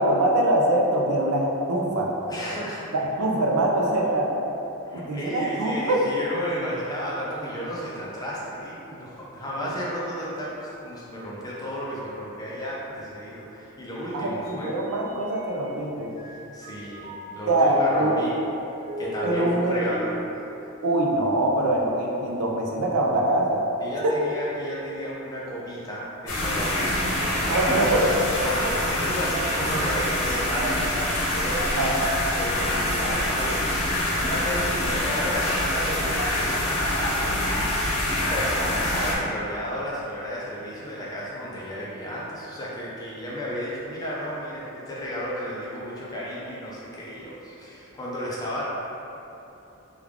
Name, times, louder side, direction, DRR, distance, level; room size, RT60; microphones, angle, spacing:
voice 1, 0.0-2.1 2.9-4.3 4.9-6.0 14.1-16.2 17.5-18.2 19.2-19.7 20.8-23.6 24.0-24.2 27.5-28.1 31.8-32.1, right 1 dB, 85° right, -1 dB, 0.5 m, -23 dB
voice 2, 2.3-2.9 4.9-14.7 16.2-18.4 19.0-20.1 23.8-28.0 28.4-33.6 34.1-37.3 38.3-48.6, equal, 15° left, -6 dB, 0.5 m, -33 dB
Mallet percussion, 14.9-15.8 16.2-21.6, right 1 dB, 40° left, 1.3 m, -38 dB
sound 1, 26.3-39.2, left 1 dB, 80° left, 0.7 m, -25 dB
3.3 x 2.3 x 3.4 m, 2.9 s
head